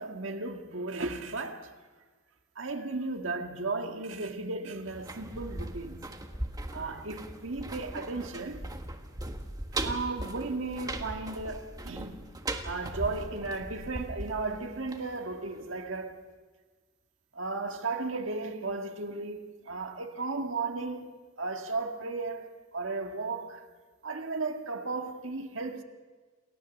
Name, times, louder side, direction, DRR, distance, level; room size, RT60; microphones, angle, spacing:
voice 1, 0.0-1.7 2.6-6.1 6.7-8.7 9.8-12.3 12.6-16.3 17.3-23.7 24.0-25.8, right 3 dB, 75° right, 1.7 m, -35 dB
sound 1, 4.8-15.7 16.0-16.1, right 1 dB, 20° right, 1.5 m, -39 dB
28.5 x 15.0 x 7.2 m
head